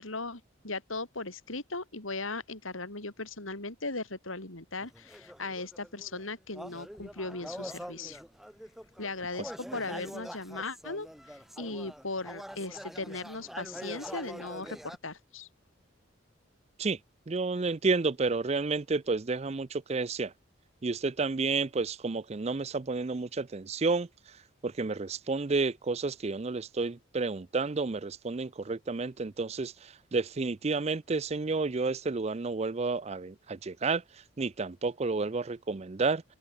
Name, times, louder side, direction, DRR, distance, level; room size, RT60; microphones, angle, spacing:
voice 1, 0.0-8.2 9.0-15.5, left 3 dB, 90° left, 5.2 m, -38 dB
sound 1, 4.8-6.2 6.5-15.0, equal, ahead, 3.2 m, -44 dB
voice 2, 17.3-20.3 20.8-24.1 24.6-29.7 30.1-34.0 34.4-36.2, right 3 dB, 30° right, 0.5 m, -30 dB
head